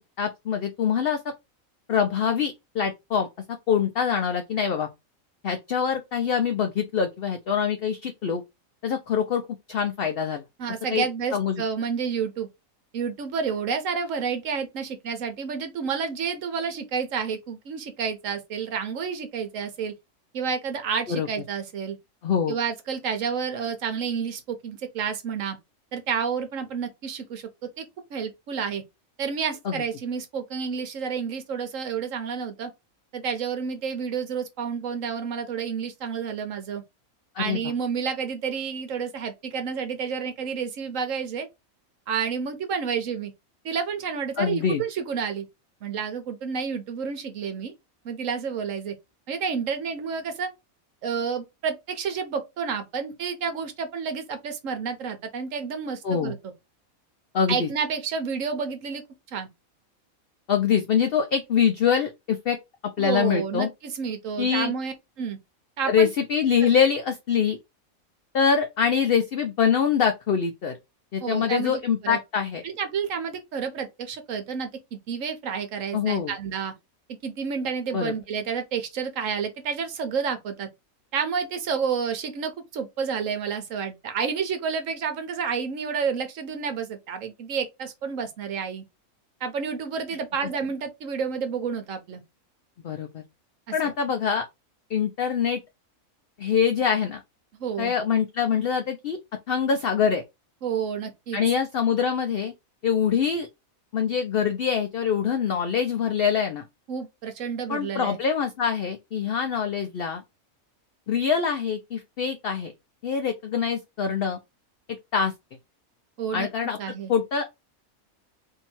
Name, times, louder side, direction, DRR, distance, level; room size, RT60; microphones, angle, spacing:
voice 1, 0.2-1.2 1.9-3.3 3.7-4.9 5.4-8.4 8.8-9.4 9.7-10.4 10.9-11.1 11.3-11.6 21.1-21.3 22.2-22.6 29.7-29.8 37.4-37.6 44.4-44.8 56.0-56.3 57.3-57.7 60.5-62.6 63.0-63.7 64.4-64.7 65.9-67.6 68.3-70.7 71.1-72.6 75.9-76.3 77.9-78.1 92.8-93.2 93.7-94.4 94.9-95.6 96.4-97.2 97.8-99.2 99.5-100.2 101.3-102.5 102.8-103.5 103.9-106.6 107.7-110.2 111.1-112.7 113.0-114.4 115.1-115.3 116.3-116.8 117.1-117.6, left 7 dB, 60° left, 0.6 m, -24 dB
voice 2, 10.6-12.5 12.9-19.9 20.3-22.0 22.5-25.6 25.9-27.5 27.8-28.8 29.2-32.7 33.1-36.8 37.4-41.5 42.1-43.3 43.6-45.5 45.8-47.7 48.0-48.9 49.3-50.5 51.0-56.5 57.5-59.0 59.3-59.5 63.0-65.4 65.8-66.1 71.2-72.2 72.6-76.7 77.2-80.7 81.1-88.8 89.4-92.2 93.7-93.9 97.6-97.9 100.6-101.4 106.9-108.2 116.2-116.5 116.8-117.1, right 6 dB, 70° right, 1.1 m, -30 dB
2.8 x 2.7 x 4.3 m
omnidirectional pair, 1.5 m